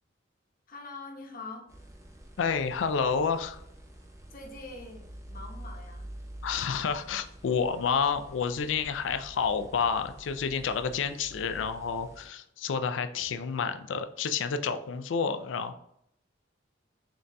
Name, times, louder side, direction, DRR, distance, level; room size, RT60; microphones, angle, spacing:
voice 1, 0.7-1.7 4.3-6.1 8.7-8.9, left 3 dB, 50° left, 0 dB, 0.9 m, -44 dB
sound 1, 1.7-12.3, right 1 dB, 15° right, 0.7 m, -47 dB
voice 2, 2.4-3.6 6.4-15.7, left 6 dB, 75° left, 10 dB, 0.4 m, -29 dB
3.9 x 3.8 x 2.2 m, 0.74 s
head